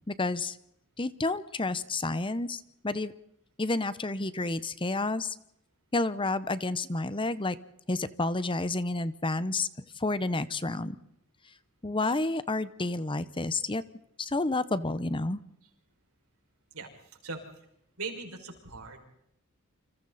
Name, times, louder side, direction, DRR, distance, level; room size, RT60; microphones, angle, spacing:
voice 1, 0.1-0.6 1.0-3.1 3.6-5.4 5.9-7.6 7.9-9.7 10.0-11.0 11.8-13.8 14.2-15.4, left 2 dB, 25° left, 14 dB, 0.9 m, -30 dB
voice 2, 16.7-17.4 18.0-19.0, right 4 dB, 80° right, 2 dB, 5.9 m, -40 dB
29.0 x 27.0 x 4.2 m, 0.77 s
head